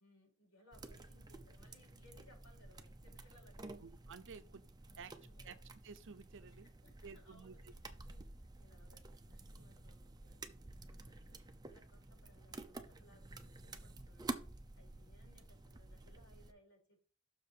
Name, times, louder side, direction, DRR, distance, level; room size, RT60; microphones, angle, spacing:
voice 1, 0.0-3.8 4.3-4.4 4.8-5.5 6.6-7.6 8.0-14.4 14.8-17.1, left 1 dB, 70° left, 4.3 m, -67 dB
sound 1, 0.7-16.5, right 2 dB, 20° right, 0.6 m, -51 dB
voice 2, 3.8-4.6 5.0-5.1 5.4-5.6 5.8-6.7 7.0-7.7, right 5 dB, 60° right, 0.7 m, -53 dB
6.5 x 4.7 x 5.0 m
head